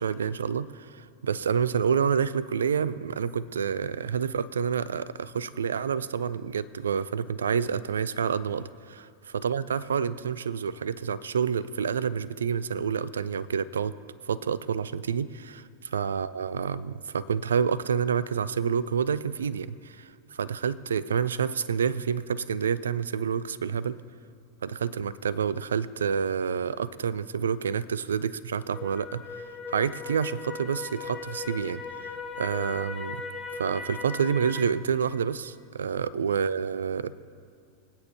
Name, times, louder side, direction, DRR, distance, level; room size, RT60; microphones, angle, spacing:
voice 1, 0.0-9.0 9.4-13.9 14.3-15.6 15.9-24.0 24.6-33.2 33.6-37.1, right 7 dB, 65° right, 18 dB, 0.4 m, -28 dB
sound 1, 28.7-34.7, left 4 dB, 20° left, 1.2 m, -38 dB
24.5 x 8.9 x 2.8 m, 2.4 s
figure-of-eight pair, 90°, 0 cm